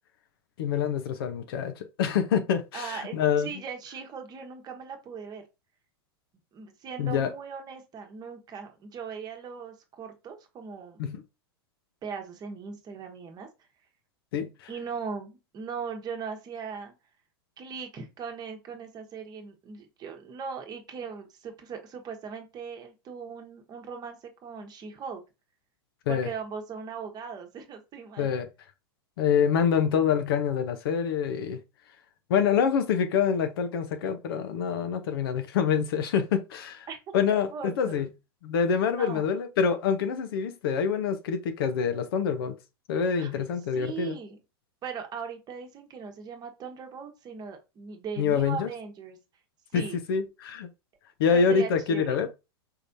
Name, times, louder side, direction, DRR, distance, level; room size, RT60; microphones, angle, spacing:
voice 1, 0.6-3.5 7.0-7.3 11.0-11.2 14.3-14.5 26.1-26.3 28.2-28.5 29.2-31.6 32.3-36.9 37.1-38.1 38.4-42.6 42.9-44.2 48.2-48.7 49.7-50.7 51.2-52.3, left 7 dB, 65° left, 0.8 m, -26 dB
voice 2, 2.7-5.4 6.5-11.0 12.0-13.5 14.7-16.9 17.6-25.2 26.1-28.3 36.9-37.0 37.5-38.1 38.9-39.4 43.2-43.3 43.7-44.4 44.8-49.2 49.7-50.0 51.3-52.2, right 6 dB, 30° right, 1.1 m, -39 dB
4.7 x 3.2 x 2.7 m
hypercardioid pair, 105°, 13 cm